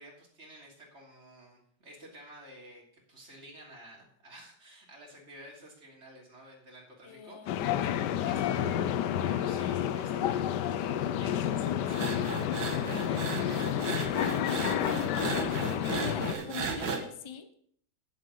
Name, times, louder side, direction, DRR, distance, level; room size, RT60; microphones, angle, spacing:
voice 1, 0.0-2.8 3.1-7.8 8.2-14.5, right 1 dB, 40° right, -1 dB, 3.2 m, -51 dB
voice 2, 7.0-7.6 15.9-17.7, left 5 dB, 30° left, 9 dB, 0.5 m, -43 dB
sound 1, 7.5-16.3, left 10 dB, 75° left, 1.2 m, -30 dB
sound 2, 11.9-17.0, right 4 dB, 85° right, 2.1 m, -35 dB
9.5 x 7.4 x 6.7 m, 0.64 s
omnidirectional pair, 1.9 m